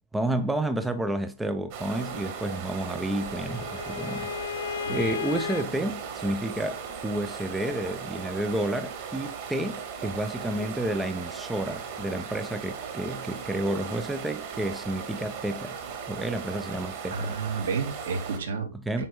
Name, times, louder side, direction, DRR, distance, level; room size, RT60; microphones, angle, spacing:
voice 1, 0.1-15.8 16.1-17.4 18.7-19.0, right 1 dB, 5° right, 0.3 m, -30 dB
sound 1, 1.7-18.4, right 6 dB, 30° right, 1.8 m, -37 dB
Bowed string instrument, 2.5-5.7, left 9 dB, 60° left, 0.4 m, -35 dB
voice 2, 17.1-19.1, right 5 dB, 70° right, 2.7 m, -31 dB
9.2 x 4.7 x 3.8 m
hypercardioid pair, 175°, 0 cm